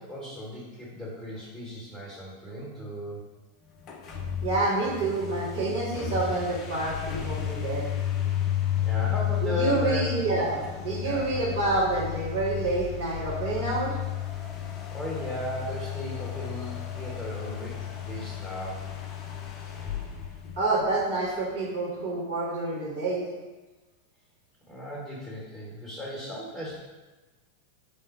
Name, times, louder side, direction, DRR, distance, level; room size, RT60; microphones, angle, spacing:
voice 1, 0.0-3.2 8.8-10.1 11.0-11.3 14.9-18.9 24.7-26.7, left 1 dB, 5° right, -6 dB, 1.0 m, -36 dB
sound 1, 3.8-21.3, left 10 dB, 35° left, 0.4 m, -33 dB
voice 2, 4.4-7.8 9.4-13.9 20.6-23.3, right 3 dB, 55° right, -5 dB, 1.2 m, -28 dB
3.3 x 2.1 x 4.2 m, 1.2 s
figure-of-eight pair, 90°, 0 cm